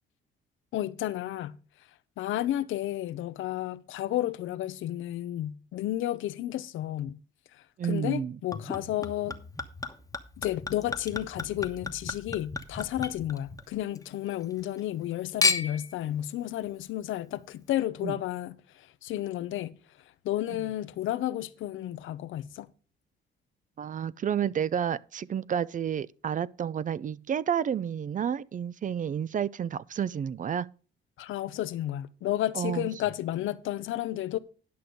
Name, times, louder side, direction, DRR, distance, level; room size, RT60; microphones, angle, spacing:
voice 1, 0.7-1.6 2.2-7.2 7.5-9.4 10.4-19.8 20.2-22.7 31.2-34.4, left 13 dB, 80° left, 0.7 m, -32 dB
voice 2, 7.8-8.4 18.0-18.1 23.8-30.7 32.5-32.9, right 8 dB, 40° right, 0.5 m, -30 dB
Chink clink / Liquid, 8.5-14.0 14.4-15.0 15.4-15.9 16.7-16.8, left 4 dB, 15° left, 1.2 m, -33 dB
11.0 x 6.1 x 5.1 m
cardioid pair, 90°, 20 cm